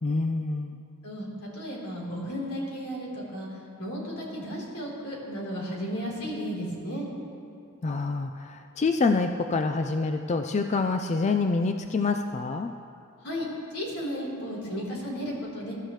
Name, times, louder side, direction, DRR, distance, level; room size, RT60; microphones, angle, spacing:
voice 1, 0.0-0.8 7.8-12.7, left 3 dB, 30° left, 6 dB, 0.4 m, -26 dB
voice 2, 1.0-3.5 3.8-7.1 13.2-13.4 13.7-15.7, equal, 85° left, -4 dB, 3.8 m, -34 dB
21.5 x 12.5 x 3.2 m, 2.5 s
head